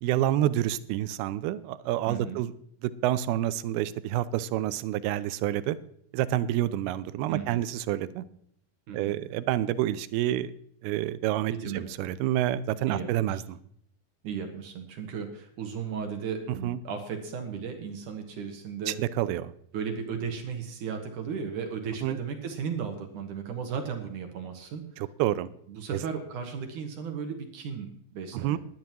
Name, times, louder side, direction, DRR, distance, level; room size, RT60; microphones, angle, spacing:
voice 1, 0.0-2.5 2.8-5.8 6.1-8.2 8.9-10.5 10.8-13.6 16.5-16.8 18.9-19.5 22.0-22.2 25.0-25.5 25.9-26.0 28.3-28.6, right 13 dB, 90° right, 15 dB, 2.6 m, -28 dB
voice 2, 2.1-2.4 7.3-7.6 8.9-9.2 11.5-11.8 12.9-13.4 14.2-19.0 19.7-24.8 25.7-28.6, right 6 dB, 65° right, 5 dB, 2.4 m, -35 dB
20.0 x 10.5 x 3.0 m, 0.68 s
omnidirectional pair, 4.4 m